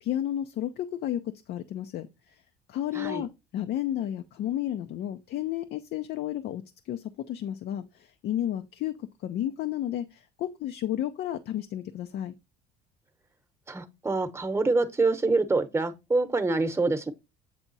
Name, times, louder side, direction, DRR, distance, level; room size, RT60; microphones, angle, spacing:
voice 1, 0.0-2.4 2.7-12.3, left 12 dB, 60° left, 0.6 m, -32 dB
voice 2, 13.7-17.1, right 3 dB, 15° right, 1.0 m, -26 dB
8.3 x 3.5 x 4.0 m
supercardioid pair, 90°, 19 cm